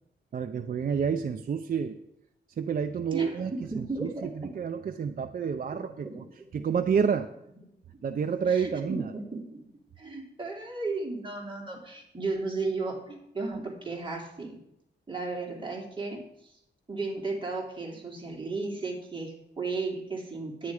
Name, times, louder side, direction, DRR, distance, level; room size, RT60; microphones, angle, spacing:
voice 1, 0.3-2.0 2.6-3.5 3.8-6.2 6.5-7.3 8.0-9.1, right 6 dB, 50° right, 7 dB, 0.6 m, -29 dB
voice 2, 3.1-4.5 5.4-6.5 8.5-9.6 10.0-14.6 15.1-16.5 16.9-20.7, right 3 dB, 25° right, -1 dB, 3.2 m, -35 dB
10.0 x 9.5 x 4.9 m, 0.80 s
wide cardioid pair, 105°, 18 cm